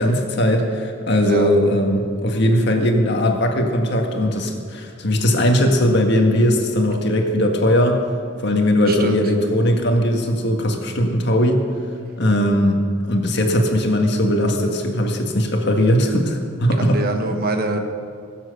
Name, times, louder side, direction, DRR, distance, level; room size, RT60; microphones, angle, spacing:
voice 1, 0.0-8.0 8.4-11.6 12.1-17.0, equal, 55° left, 3 dB, 1.7 m, -19 dB
voice 2, 8.8-9.2 16.8-17.8, right 2 dB, 45° right, 5 dB, 1.3 m, -24 dB
22.0 x 7.6 x 6.6 m, 2.2 s
head